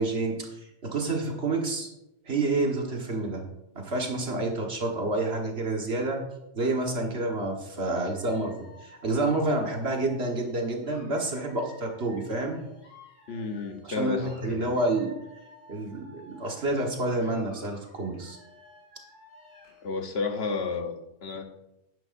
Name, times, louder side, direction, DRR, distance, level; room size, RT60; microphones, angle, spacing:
voice 1, 0.0-1.9 2.3-3.4 3.8-6.2 6.5-12.6 13.8-15.1 15.7-18.4, right 2 dB, 65° right, 1 dB, 1.8 m, -29 dB
Dog / Alarm, 8.0-13.9 14.1-16.9 17.2-19.9, left 2 dB, 80° left, 4.0 m, -54 dB
voice 2, 13.3-14.7 19.8-21.4, left 4 dB, 65° left, 6 dB, 1.2 m, -32 dB
10.5 x 10.5 x 2.6 m, 0.87 s
omnidirectional pair, 1.2 m